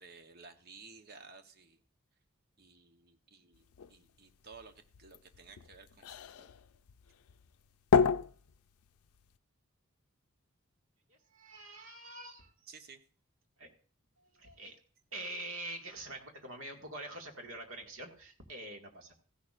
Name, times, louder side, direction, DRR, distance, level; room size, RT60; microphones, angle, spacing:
voice 1, 0.0-1.8 2.6-6.5 12.7-13.0, right 4 dB, 45° right, 6 dB, 1.0 m, -55 dB
sound 1, 3.5-9.4, left 6 dB, 90° left, 0.4 m, -34 dB
voice 2, 11.1-12.5 13.6-13.7 14.3-14.8 15.1-19.1, right 1 dB, 65° right, 2 dB, 2.0 m, -45 dB
15.0 x 11.0 x 2.5 m, 0.42 s
head